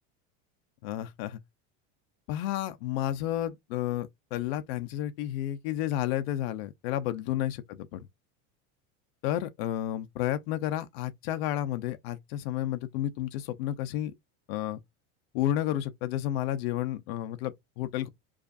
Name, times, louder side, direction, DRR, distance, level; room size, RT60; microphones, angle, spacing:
voice 1, 0.8-1.4 2.3-7.6 7.9-8.0 9.2-14.1 14.5-14.8 15.3-18.1, left 12 dB, 65° left, 0.7 m, -31 dB
4.9 x 2.5 x 2.5 m
cardioid pair, 175°, 33 cm